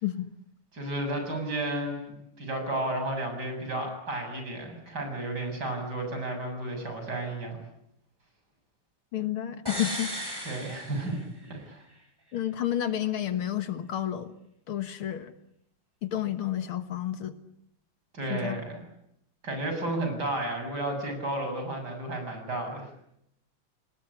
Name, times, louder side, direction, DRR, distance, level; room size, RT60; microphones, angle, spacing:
voice 1, 0.7-7.6 10.4-11.2 11.5-11.8 18.1-18.8 19.4-22.9, right 1 dB, 45° right, 5 dB, 8.0 m, -32 dB
voice 2, 9.1-10.1 12.3-14.3 14.7-15.3 16.0-17.4 18.3-18.6, left 11 dB, 75° left, 11 dB, 2.3 m, -30 dB
sound 1, 9.7-11.6 11.9-12.0, equal, 10° right, 8.0 m, -36 dB
29.5 x 19.5 x 9.9 m, 0.77 s
omnidirectional pair, 2.4 m